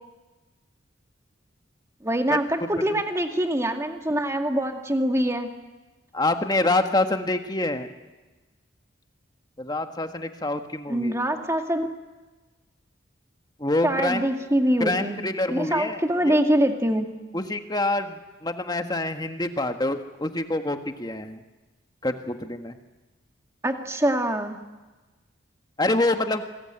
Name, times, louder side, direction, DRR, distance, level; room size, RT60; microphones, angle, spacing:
voice 1, 2.0-5.5 10.9-11.9 13.8-15.2 15.5-17.1 23.6-24.6, right 1 dB, 15° right, 4 dB, 2.1 m, -24 dB
voice 2, 6.1-7.9 9.6-11.1 13.6-14.3 14.8-16.4 17.3-21.4 22.0-22.8 25.8-26.4, left 2 dB, 20° left, 7 dB, 1.5 m, -26 dB
28.0 x 21.0 x 9.0 m, 1.2 s
head